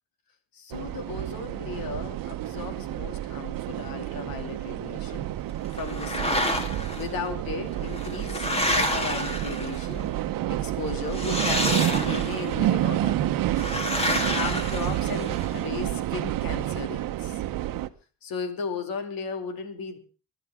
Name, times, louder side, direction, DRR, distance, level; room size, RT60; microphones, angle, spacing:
voice 1, 0.5-5.3 5.7-6.3 7.0-8.5 8.7-10.2 10.5-13.7 14.3-17.4 18.2-20.0, left 5 dB, 80° left, 7 dB, 2.7 m, -36 dB
sound 1, 0.7-17.9, right 13 dB, 70° right, 1.0 m, -29 dB
sound 2, 5.8-7.0 7.8-10.0 11.1-12.5 13.6-15.5, left 1 dB, 15° left, 2.4 m, -29 dB
24.0 x 12.0 x 3.6 m, 0.34 s
cardioid pair, 125°, 35 cm